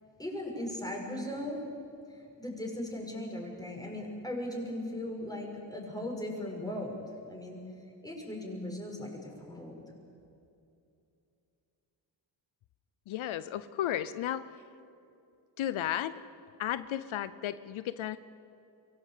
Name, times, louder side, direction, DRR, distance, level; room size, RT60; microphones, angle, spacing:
voice 1, 0.2-1.6 2.1-7.0 7.3-7.6 8.0-9.8, left 1 dB, 10° left, 0 dB, 6.0 m, -38 dB
voice 2, 13.1-14.5 15.6-16.2 16.6-18.2, left 11 dB, 85° left, 14 dB, 0.7 m, -34 dB
23.5 x 17.0 x 8.4 m, 2.6 s
cardioid pair, 70°, 47 cm